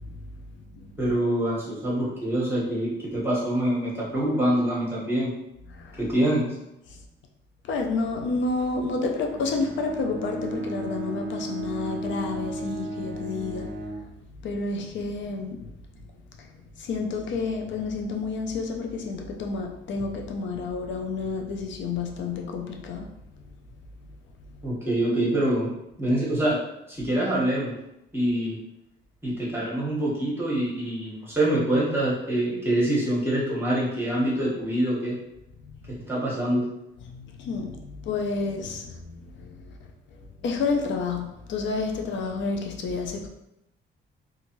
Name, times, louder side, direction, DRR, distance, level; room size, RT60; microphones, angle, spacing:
voice 1, 0.0-0.9 5.7-6.0 6.9-7.0 7.6-23.6 24.4-24.6 35.6-36.0 37.0-39.8 40.1-43.3, left 4 dB, 70° left, 3 dB, 0.5 m, -31 dB
voice 2, 1.0-5.3 6.0-6.5 24.6-25.7 26.0-26.6 26.9-27.7 28.1-28.6 29.2-35.1 35.9-36.6, right 1 dB, 10° right, -5 dB, 1.3 m, -25 dB
Bowed string instrument, 9.2-14.1, right 2 dB, 70° right, 0.5 m, -34 dB
2.6 x 2.5 x 3.0 m, 0.86 s
cardioid pair, 90°, 20 cm